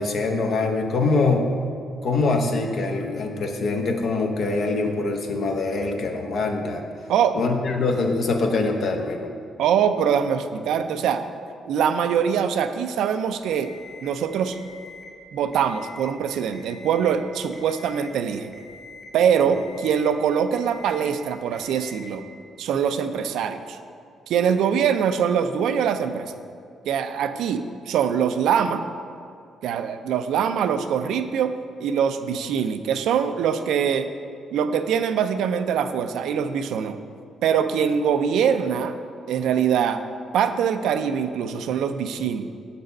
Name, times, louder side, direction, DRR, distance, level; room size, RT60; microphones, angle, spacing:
voice 1, 0.0-1.5 2.0-6.8 7.3-9.3, left 3 dB, 60° left, 3 dB, 0.8 m, -24 dB
voice 2, 9.6-11.2 11.7-13.7 14.0-14.6 15.3-18.5 19.1-22.2 22.6-23.8 24.3-26.3 26.9-28.8 29.6-31.5 31.8-34.1 34.5-37.0 37.4-39.0 39.3-40.0 40.3-42.5, right 7 dB, 80° right, 9 dB, 0.3 m, -23 dB
Alarm, 13.5-14.1 14.5-15.1 15.5-16.1 16.5-17.1 17.5-18.1 18.5-19.1 19.5-20.1 20.5-21.1 21.5-22.1, left 4 dB, 40° left, 1.2 m, -45 dB
6.8 x 4.0 x 5.3 m, 2.4 s
supercardioid pair, 65°, 0 cm